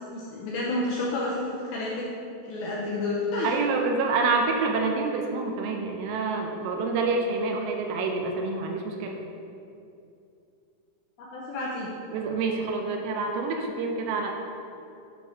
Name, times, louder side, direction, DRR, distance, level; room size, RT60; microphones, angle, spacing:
voice 1, 0.1-2.1 2.4-3.5 11.2-11.9, left 2 dB, 75° left, -5 dB, 2.3 m, -30 dB
voice 2, 3.4-9.2 12.1-14.3, right 3 dB, 80° right, 2 dB, 2.8 m, -27 dB
9.1 x 4.6 x 5.5 m, 2.6 s
omnidirectional pair, 5.3 m